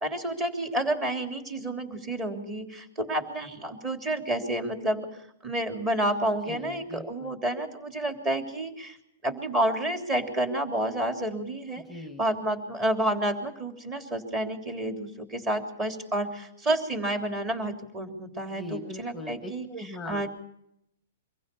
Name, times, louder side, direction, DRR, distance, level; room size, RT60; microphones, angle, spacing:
voice 1, 0.0-5.1 5.4-9.0 9.2-11.8 12.2-19.7 20.0-20.3, right 1 dB, 20° right, 4 dB, 3.3 m, -30 dB
voice 2, 6.5-7.4 11.8-12.2 18.5-20.3, left 1 dB, ahead, 8 dB, 1.3 m, -40 dB
24.0 x 15.5 x 7.0 m, 0.76 s
hypercardioid pair, 145°, 0 cm